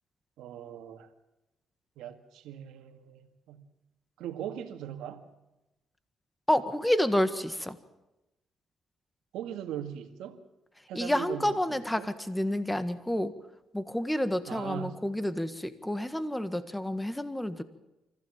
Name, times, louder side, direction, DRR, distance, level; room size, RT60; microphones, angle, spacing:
voice 1, 0.4-1.1 2.0-3.7 4.2-5.2 9.3-10.4 10.9-12.1 14.5-15.0, right 10 dB, 90° right, 2.0 m, -40 dB
voice 2, 6.5-7.8 10.9-13.3 13.7-17.6, left 1 dB, 5° left, 1.6 m, -29 dB
25.0 x 15.5 x 7.4 m
cardioid pair, 90°, 0 cm